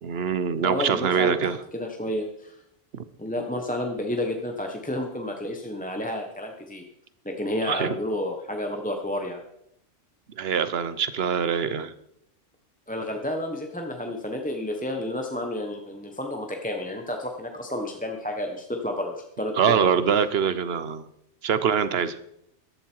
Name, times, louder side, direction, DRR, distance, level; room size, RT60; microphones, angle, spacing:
voice 1, 0.0-1.6 2.9-3.0 7.7-7.9 10.4-11.9 19.6-21.1 21.4-22.2, right 7 dB, 60° right, 14 dB, 1.1 m, -24 dB
voice 2, 0.6-2.6 3.2-6.9 7.2-9.4 12.9-19.9, left 1 dB, 5° left, 2 dB, 1.2 m, -31 dB
14.0 x 12.5 x 4.6 m, 0.77 s
omnidirectional pair, 1.2 m